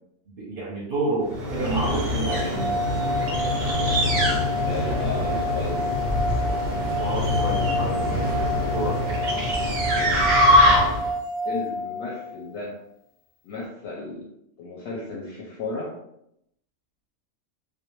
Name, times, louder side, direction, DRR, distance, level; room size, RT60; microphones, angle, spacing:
voice 1, 0.3-2.7 7.0-8.4 8.7-9.0, right 2 dB, 55° right, -4 dB, 0.7 m, -29 dB
sound 1, 1.3-11.1, equal, 90° right, 0.4 m, -24 dB
sound 2, 1.7-10.2, left 3 dB, 90° left, 1.0 m, -31 dB
sound 3, 2.2-12.4, left 2 dB, 30° left, 0.6 m, -29 dB
voice 2, 4.6-5.9 9.8-10.4 11.5-12.8 13.4-14.3 14.6-15.9, left 3 dB, 65° left, -3 dB, 0.8 m, -34 dB
2.2 x 2.2 x 2.9 m, 0.78 s
omnidirectional pair, 1.4 m